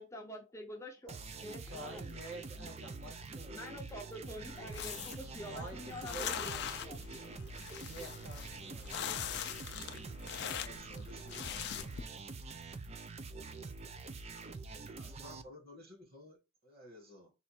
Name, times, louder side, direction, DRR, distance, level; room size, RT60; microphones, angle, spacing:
voice 1, 0.0-2.1 3.5-7.3, left 1 dB, 15° left, 0.6 m, -47 dB
sound 1, 1.1-15.4, right 3 dB, 30° right, 0.4 m, -46 dB
voice 2, 1.6-4.0 5.3-6.9 7.8-9.2, right 2 dB, 65° right, 1.3 m, -49 dB
sound 2, 4.2-12.0, left 9 dB, 55° left, 0.4 m, -42 dB
voice 3, 10.4-11.7 15.0-17.3, left 1 dB, 50° right, 2.1 m, -55 dB
4.2 x 2.5 x 4.3 m
head